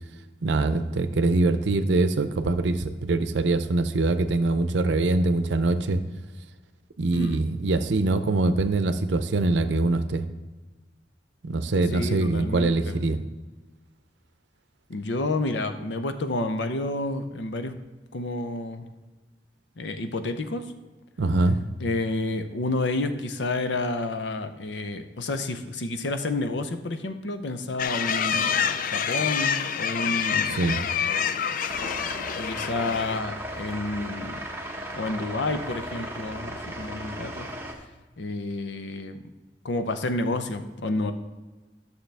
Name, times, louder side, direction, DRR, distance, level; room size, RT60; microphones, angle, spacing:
voice 1, 0.4-6.0 7.0-10.2 11.4-13.2 21.2-21.6 30.6-30.8, right 2 dB, 85° right, 11 dB, 0.6 m, -23 dB
voice 2, 11.9-13.0 14.9-17.7 18.1-18.9 19.8-20.7 21.8-30.6 31.1-31.4 32.4-34.4 34.9-37.5 38.2-39.2 39.6-41.1, left 2 dB, 85° left, 9 dB, 0.7 m, -30 dB
sound 1, 27.8-33.2, left 7 dB, 50° left, 0.4 m, -27 dB
sound 2, 31.7-37.7, right 1 dB, 15° right, 0.9 m, -36 dB
11.5 x 6.7 x 3.4 m, 1.2 s
head